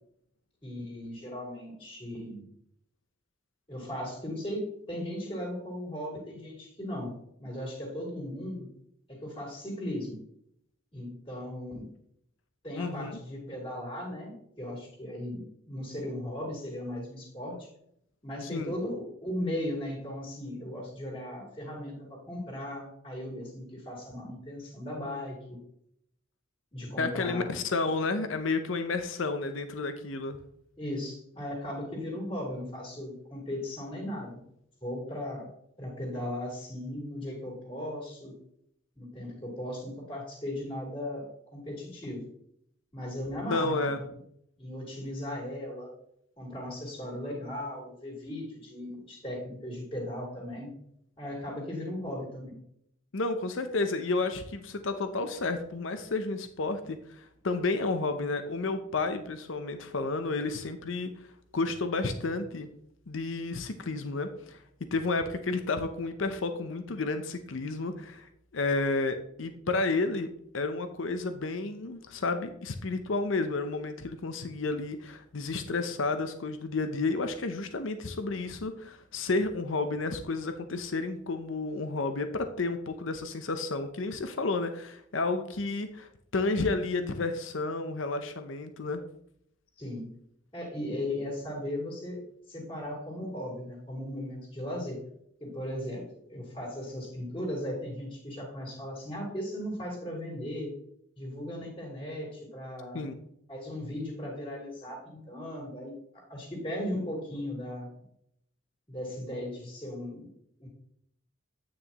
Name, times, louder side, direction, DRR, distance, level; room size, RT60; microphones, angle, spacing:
voice 1, 0.6-2.5 3.7-8.7 9.1-10.2 10.9-11.9 12.6-17.7 18.2-21.9 22.3-25.6 26.7-27.5 30.8-34.4 34.8-35.5 35.8-38.3 39.0-42.3 42.9-44.1 44.6-45.9 46.4-50.7 51.2-52.5 89.8-90.1 90.5-92.2 92.5-95.0 95.4-96.0 96.3-100.7 101.2-103.1 103.5-107.9 108.9-110.3 110.6-110.7, left 1 dB, 30° left, -4 dB, 3.6 m, -37 dB
voice 2, 12.8-13.2 18.5-18.7 27.0-30.4 43.5-44.0 53.1-61.1 61.5-62.7 63.1-64.6 64.9-70.3 70.5-89.0 102.9-103.1, left 3 dB, 85° left, 8 dB, 0.7 m, -31 dB
9.6 x 6.3 x 3.0 m, 0.70 s
head